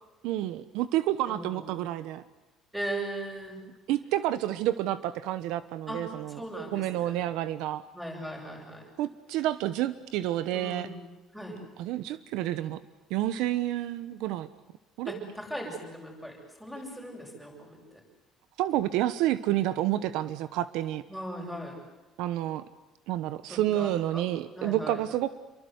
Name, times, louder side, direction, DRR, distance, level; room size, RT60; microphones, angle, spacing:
voice 1, 0.2-2.2 3.9-6.3 6.7-7.8 9.0-10.9 11.8-12.8 13.1-14.5 15.0-15.2 18.6-21.0 22.2-22.6 23.1-25.3, right 13 dB, 80° right, 14 dB, 1.1 m, -29 dB
voice 2, 1.3-1.7 2.7-3.6 5.9-7.2 7.9-8.9 10.5-11.0 11.3-11.6 15.1-18.0 21.1-21.8 23.5-24.3 24.5-25.0, right 1 dB, 5° right, 1 dB, 7.9 m, -38 dB
29.0 x 24.0 x 8.1 m, 1.1 s
cardioid pair, 170°, 0 cm